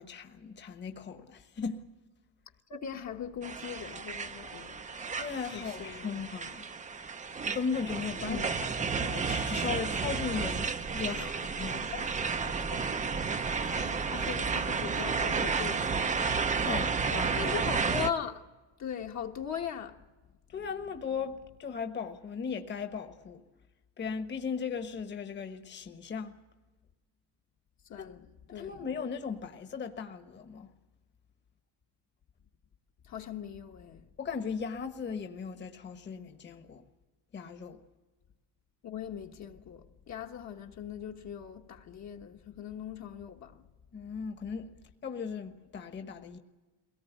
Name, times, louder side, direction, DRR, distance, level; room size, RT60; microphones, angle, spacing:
voice 1, 0.0-1.8 5.2-6.7 7.5-11.9 16.6-17.4 20.5-23.4 24.0-26.4 28.0-28.1 28.5-30.7 34.2-36.8 37.3-37.8 43.9-44.7 45.0-46.4, left 6 dB, 30° left, 1.3 m, -37 dB
voice 2, 2.7-4.8 5.5-6.2 8.2-8.6 11.2-11.3 11.7-12.8 13.1-16.0 17.4-18.4 18.8-20.0 27.9-28.9 33.0-34.1 38.8-43.6, left 8 dB, 45° left, 1.3 m, -40 dB
sound 1, 3.4-18.1, right 5 dB, 20° right, 0.6 m, -32 dB
22.5 x 18.5 x 8.2 m
cardioid pair, 155°, 38 cm